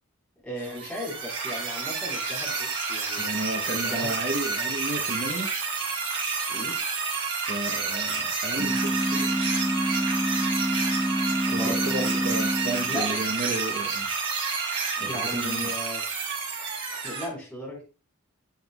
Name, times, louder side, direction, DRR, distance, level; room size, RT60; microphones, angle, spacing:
voice 1, 0.4-3.3 3.7-4.1 6.5-6.8 11.5-12.2 12.9-13.2 15.0-16.0 17.0-17.8, left 1 dB, 5° left, -4 dB, 4.2 m, -36 dB
sound 1, 0.6-17.2, right 5 dB, 70° right, 3.8 m, -29 dB
voice 2, 3.2-5.5 7.5-9.3 11.5-14.1 15.0-15.7, right 1 dB, 50° right, 4 dB, 0.9 m, -33 dB
sound 2, 8.6-13.3, equal, 15° right, 1.3 m, -27 dB
10.5 x 7.7 x 2.3 m, 0.32 s
head